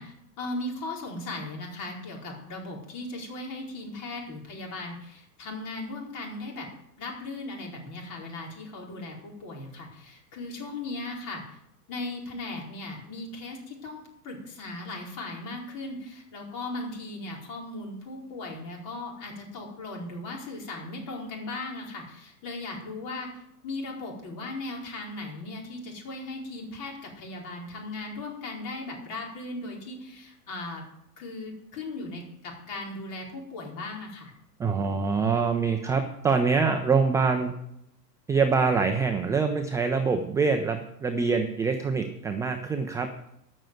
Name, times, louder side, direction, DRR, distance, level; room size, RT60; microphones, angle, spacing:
voice 1, 0.0-6.7 7.0-11.6 11.9-23.3 23.6-30.8 31.2-34.3, left 2 dB, 40° left, -1 dB, 4.9 m, -37 dB
voice 2, 34.6-37.5 38.3-43.1, right 5 dB, 5° right, 5 dB, 0.4 m, -25 dB
13.5 x 6.6 x 7.9 m, 0.78 s
hypercardioid pair, 115°, 48 cm